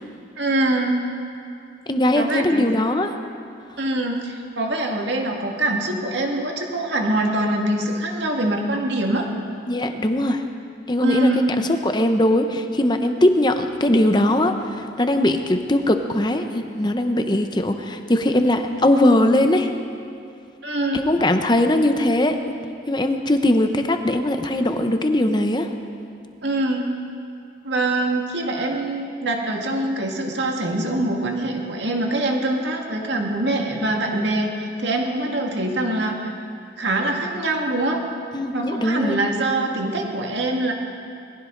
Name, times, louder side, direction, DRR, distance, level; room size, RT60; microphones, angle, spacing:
voice 1, 0.4-1.0 2.1-2.7 3.8-9.3 11.0-11.4 20.6-21.0 26.4-26.9 27.6-36.3 36.8-38.0 38.5-40.7, right 1 dB, 70° right, 1 dB, 2.0 m, -24 dB
voice 2, 1.9-3.1 9.7-10.4 10.9-11.3 11.8-19.7 20.9-22.4 22.9-25.7 38.3-39.2, left 1 dB, 25° left, 6 dB, 0.8 m, -20 dB
21.5 x 16.0 x 3.9 m, 2.5 s
head